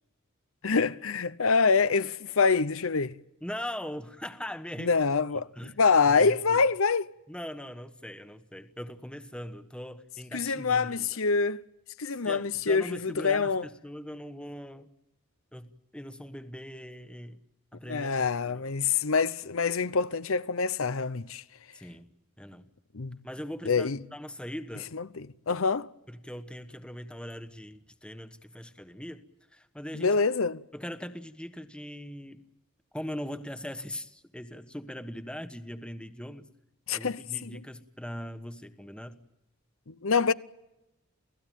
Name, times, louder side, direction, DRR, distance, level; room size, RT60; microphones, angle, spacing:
voice 1, 0.6-3.2 4.8-7.1 10.3-11.6 12.0-13.6 17.9-21.4 22.9-23.2 23.7-24.0 24.9-25.9 29.9-30.6 36.9-37.6 39.9-40.3, left 5 dB, 75° left, 0.8 m, -26 dB
voice 2, 3.4-5.0 5.3-5.8 6.1-6.6 7.3-11.2 12.1-14.9 15.5-17.4 17.7-18.7 21.7-22.1 22.4-22.7 23.2-24.9 26.1-29.2 29.5-30.2 30.7-32.4 32.9-36.5 36.9-39.2, equal, 5° left, 1.2 m, -41 dB
29.5 x 17.5 x 9.2 m
head